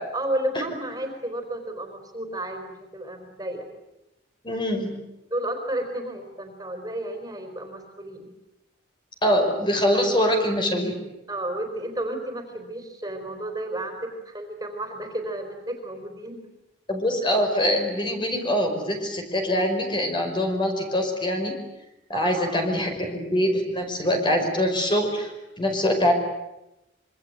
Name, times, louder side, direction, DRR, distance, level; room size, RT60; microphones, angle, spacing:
voice 1, 0.1-3.7 5.3-8.3 11.3-16.4 22.1-22.7 25.8-25.9, right 1 dB, 20° right, 5 dB, 4.4 m, -32 dB
voice 2, 4.4-4.9 9.2-10.9 16.9-21.6 22.1-26.1, equal, 25° left, 4 dB, 5.4 m, -24 dB
26.0 x 24.5 x 9.3 m, 0.92 s
head